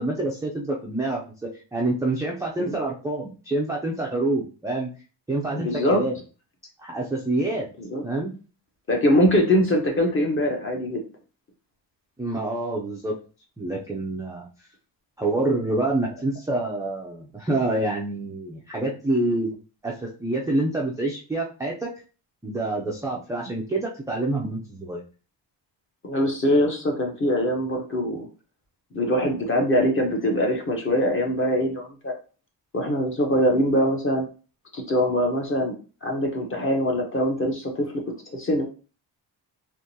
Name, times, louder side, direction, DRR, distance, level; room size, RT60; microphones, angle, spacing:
voice 1, 0.0-4.9 5.3-6.1 6.8-7.7 8.0-8.3 12.2-13.2 13.6-14.5 15.2-19.5 19.8-21.9 22.4-25.0, right 2 dB, 10° right, -2 dB, 0.3 m, -27 dB
voice 2, 5.6-6.0 7.8-8.0 8.9-11.0 26.0-28.3 28.9-32.1 32.7-34.3 34.7-35.7 36.0-37.9 38.3-38.6, equal, 30° left, 2 dB, 0.8 m, -23 dB
3.6 x 2.9 x 2.7 m, 0.35 s
wide cardioid pair, 170°, 44 cm